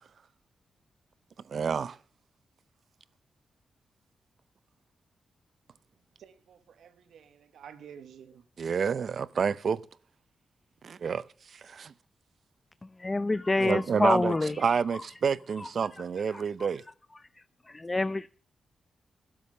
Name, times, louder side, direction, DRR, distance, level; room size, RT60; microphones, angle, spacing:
voice 1, 1.5-2.0 8.6-9.8 10.8-11.2 11.5-11.9 13.6-16.8, right 6 dB, 60° right, 0.5 m, -29 dB
voice 2, 6.2-8.4, right 8 dB, 85° right, 1.1 m, -50 dB
voice 3, 13.0-14.6 15.6-15.7 16.3-16.4 17.7-18.3, left 2 dB, 25° left, 0.4 m, -27 dB
12.5 x 7.3 x 6.6 m
cardioid pair, 75°, 0 cm